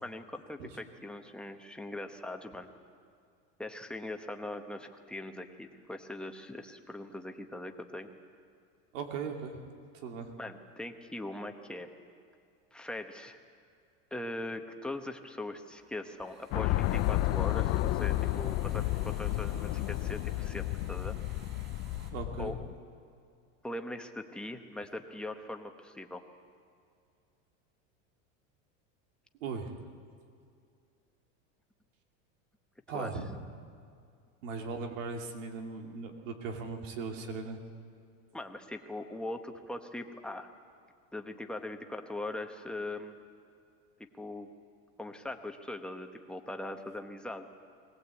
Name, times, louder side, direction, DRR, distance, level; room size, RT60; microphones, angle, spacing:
voice 1, 0.0-2.7 3.6-8.1 10.4-11.9 12.7-13.4 14.1-21.2 22.4-22.7 23.6-26.2 32.9-33.1 38.3-40.5 41.1-43.2 44.2-44.5 45.0-47.5, left 1 dB, ahead, 5 dB, 1.1 m, -41 dB
voice 2, 8.9-9.6 9.9-10.3 22.1-22.6 29.4-29.9 32.9-33.4 34.4-37.6, right 4 dB, 90° right, 4 dB, 2.6 m, -38 dB
sound 1, 15.7-22.1, right 3 dB, 30° right, 3.9 m, -55 dB
sound 2, 16.5-22.7, left 16 dB, 40° left, 0.6 m, -31 dB
21.5 x 18.5 x 8.3 m, 2.4 s
supercardioid pair, 140°, 37 cm